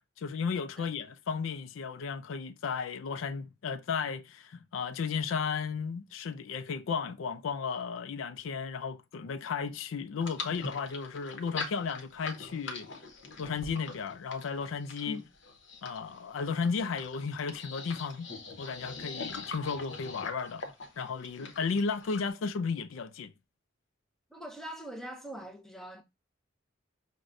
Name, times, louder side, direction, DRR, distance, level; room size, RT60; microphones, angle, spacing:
voice 1, 0.2-12.9 13.4-15.2 15.8-18.3 18.6-20.6 21.0-23.3, left 5 dB, 90° left, 0.4 m, -34 dB
sound 1, 10.2-22.3, left 4 dB, 65° left, 0.9 m, -42 dB
voice 2, 24.3-26.0, equal, ahead, 0.5 m, -42 dB
6.2 x 2.2 x 2.5 m
head